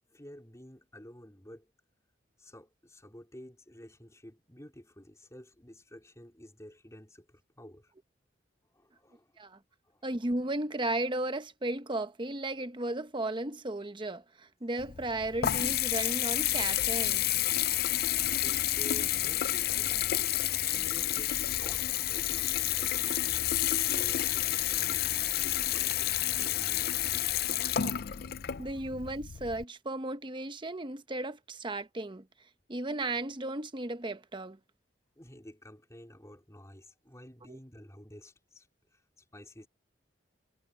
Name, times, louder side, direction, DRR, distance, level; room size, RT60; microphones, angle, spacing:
voice 1, 0.1-1.7 2.4-7.9 8.7-9.3 9.8-10.1 18.2-20.1 20.7-23.2 23.8-25.4 25.7-25.9 26.3-27.4 28.6-28.8 35.2-39.7, equal, 15° left, 4.2 m, -51 dB
voice 2, 10.0-17.4 27.8-27.9 28.6-32.2 32.7-34.6 37.5-37.6, right 2 dB, 25° right, 1.0 m, -35 dB
Water tap faucet / Bathtub (filling or washing) / Trickle dribble, 14.8-29.6, left 13 dB, 55° left, 0.5 m, -30 dB
head